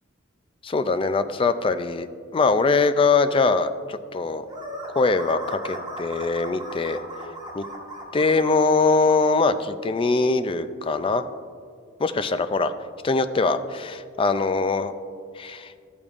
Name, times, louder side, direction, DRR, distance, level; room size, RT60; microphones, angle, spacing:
voice 1, 0.6-4.5 4.9-7.0 7.5-7.6 8.1-11.2 12.0-12.7 13.0-14.9 15.4-15.7, left 3 dB, 25° left, 11 dB, 0.3 m, -22 dB
sound 1, 4.5-9.2, right 1 dB, 20° right, 1.4 m, -37 dB
14.0 x 8.6 x 2.5 m, 2.2 s
head